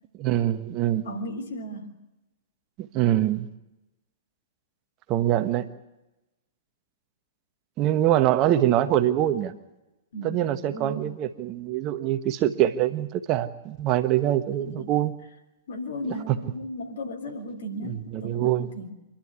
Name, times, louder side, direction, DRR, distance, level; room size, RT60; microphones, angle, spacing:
voice 1, 0.2-1.0 2.8-3.5 5.1-5.7 7.8-9.5 10.2-15.1 16.0-16.4 17.8-18.7, right 12 dB, 30° right, 10 dB, 1.3 m, -24 dB
voice 2, 1.0-1.9 10.1-11.1 14.6-14.9 15.7-18.9, equal, 60° left, 4 dB, 3.7 m, -35 dB
26.5 x 12.0 x 9.5 m, 0.99 s
figure-of-eight pair, 105°, 0 cm